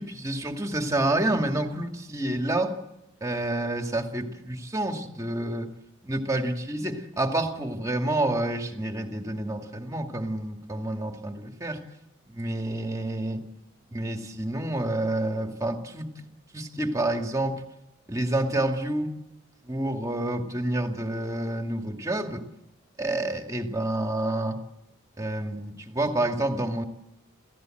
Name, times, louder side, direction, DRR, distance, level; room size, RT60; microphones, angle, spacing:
voice 1, 0.0-2.8 3.2-5.7 6.0-11.8 12.3-13.4 13.9-16.1 16.5-17.6 18.1-19.2 19.6-22.4 23.0-24.6 25.2-26.8, right 1 dB, 15° right, 4 dB, 2.2 m, -28 dB
28.5 x 16.0 x 7.8 m, 0.91 s
head